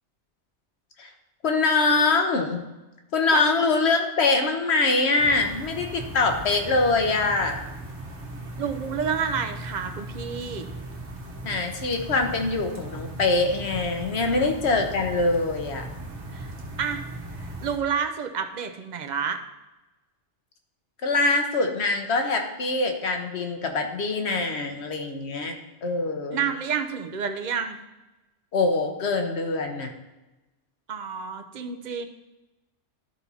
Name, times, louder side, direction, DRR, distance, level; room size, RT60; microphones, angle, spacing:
voice 1, 1.4-2.6 3.1-7.6 11.4-15.9 21.0-26.5 28.5-29.9, left 3 dB, 65° left, 4 dB, 1.2 m, -24 dB
sound 1, 5.2-17.8, right 1 dB, 70° right, 1.6 m, -38 dB
voice 2, 8.6-10.7 14.3-14.5 16.3-16.5 16.8-17.0 17.6-19.4 26.3-27.8 30.9-32.1, right 6 dB, 45° right, 6 dB, 0.7 m, -29 dB
12.5 x 4.2 x 4.1 m, 1.1 s
omnidirectional pair, 1.2 m